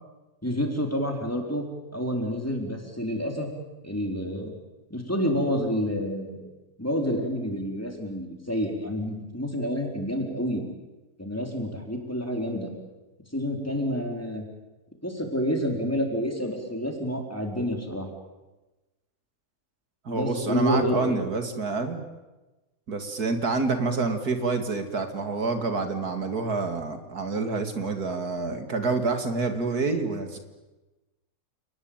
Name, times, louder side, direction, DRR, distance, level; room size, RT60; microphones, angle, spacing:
voice 1, 0.4-1.6 1.9-3.5 3.8-4.5 4.9-6.4 6.8-10.7 11.2-12.7 13.3-14.4 15.0-18.1 20.1-21.2, equal, 10° left, 2 dB, 4.3 m, -28 dB
voice 2, 20.0-22.0 22.9-30.4, right 3 dB, 80° right, 7 dB, 2.8 m, -28 dB
29.5 x 19.5 x 9.0 m, 1.1 s
omnidirectional pair, 1.6 m